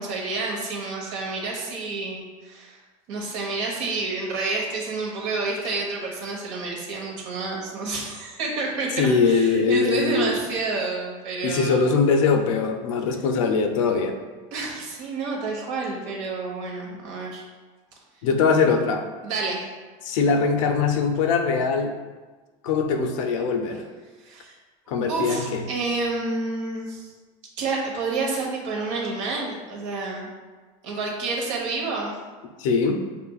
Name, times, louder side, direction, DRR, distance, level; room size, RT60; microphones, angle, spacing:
voice 1, 0.0-2.8 3.1-12.0 14.5-17.4 19.2-19.6 24.2-24.6 25.1-27.1 27.6-30.3 30.8-32.1, right 3 dB, 65° right, -2 dB, 1.1 m, -29 dB
voice 2, 9.0-10.4 11.4-14.2 18.2-19.0 20.0-21.9 22.6-23.8 24.9-25.6 32.6-33.0, left 5 dB, 70° left, 5 dB, 0.5 m, -22 dB
6.7 x 2.6 x 2.3 m, 1.3 s
cardioid pair, 180°, 17 cm